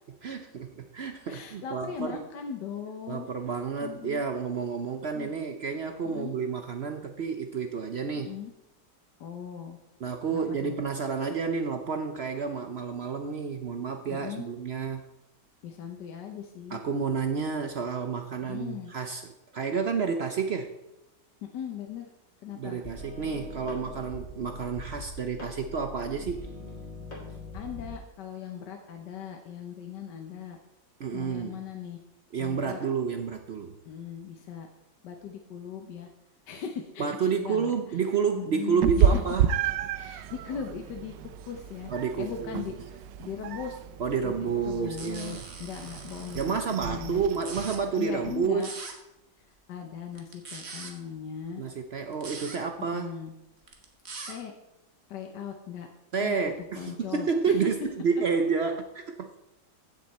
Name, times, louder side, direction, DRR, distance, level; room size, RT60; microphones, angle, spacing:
voice 1, 0.2-2.2 3.1-8.3 10.0-15.0 16.7-20.7 22.5-26.5 31.0-31.6 32.3-33.7 37.0-39.5 41.9-42.6 44.0-45.4 46.3-48.7 51.6-53.1 56.1-59.4, right 5 dB, 70° right, 7 dB, 0.6 m, -30 dB
voice 2, 1.3-3.3 3.8-4.2 5.1-5.3 6.0-6.3 8.1-8.5 9.2-9.8 10.3-10.8 14.1-14.5 15.6-16.8 18.4-18.9 21.4-22.1 22.4-22.8 27.5-30.6 31.1-32.0 32.4-32.8 33.8-34.7 35.0-36.1 36.5-37.8 38.3-39.2 39.9-41.9 42.2-43.8 44.2-47.2 48.0-48.7 49.7-51.6 52.8-53.3 54.3-54.5 55.1-55.9 56.2-57.7, left 8 dB, 75° left, 3 dB, 1.5 m, -39 dB
sound 1, 22.8-28.0, left 2 dB, 45° left, 2.8 m, -42 dB
Meow, 38.8-48.5, right 8 dB, 90° right, 1.3 m, -31 dB
sound 2, 45.0-46.4 47.3-47.8 48.6-48.9 50.1-50.9 52.1-52.6 53.6-54.3, right 4 dB, 40° right, 1.5 m, -41 dB
15.0 x 6.6 x 4.2 m, 0.90 s
omnidirectional pair, 1.9 m